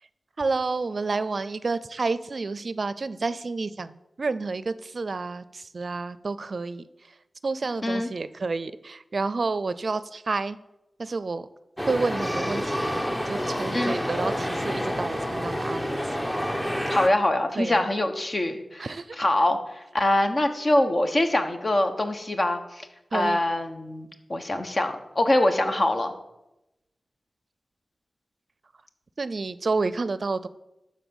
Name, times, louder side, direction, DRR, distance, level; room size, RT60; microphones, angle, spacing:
voice 1, 0.4-6.9 7.4-10.6 11.0-11.5 11.9-16.1 17.6-17.9 18.8-19.2 23.1-23.4 29.2-30.5, right 3 dB, 65° right, 15 dB, 0.4 m, -30 dB
sound 1, 11.8-17.1, equal, 15° left, 1.0 m, -28 dB
voice 2, 16.9-18.9 19.2-22.9 23.1-26.1, left 1 dB, 50° left, 6 dB, 1.2 m, -24 dB
12.0 x 4.2 x 7.1 m, 0.93 s
cardioid pair, 40°, 0 cm